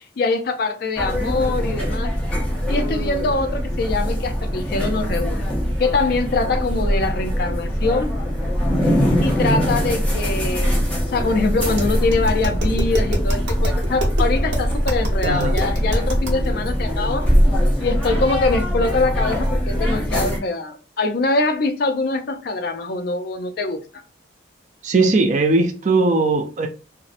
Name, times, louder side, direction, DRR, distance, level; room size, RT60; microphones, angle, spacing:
voice 1, 0.2-2.1 2.7-5.5 5.8-8.2 9.0-17.3 17.8-23.8, left 3 dB, 50° left, 0.4 m, -23 dB
sound 1, 1.0-20.4, equal, 5° left, 0.7 m, -22 dB
Tap, 11.5-16.5, equal, 60° right, 0.9 m, -24 dB
voice 2, 15.2-15.7 24.8-26.7, right 3 dB, 40° right, 0.3 m, -19 dB
2.6 x 2.0 x 2.5 m
head